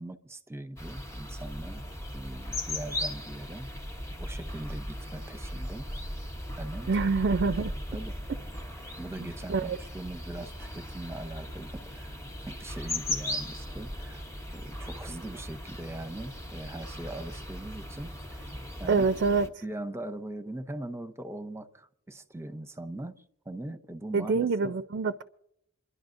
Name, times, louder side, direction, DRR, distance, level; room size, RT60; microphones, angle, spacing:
voice 1, 0.0-1.8 2.1-3.7 4.2-5.9 6.6-6.9 7.4-7.6 7.9-8.2 8.9-14.2 14.5-18.5 18.8-19.0 19.6-24.7, right 1 dB, 10° right, 0.7 m, -41 dB
sound 1, 0.8-19.5, left 1 dB, 15° left, 0.9 m, -38 dB
voice 2, 6.9-7.7 9.5-9.8 18.9-19.5 24.1-25.2, right 4 dB, 50° right, 0.4 m, -26 dB
29.0 x 11.0 x 2.6 m
head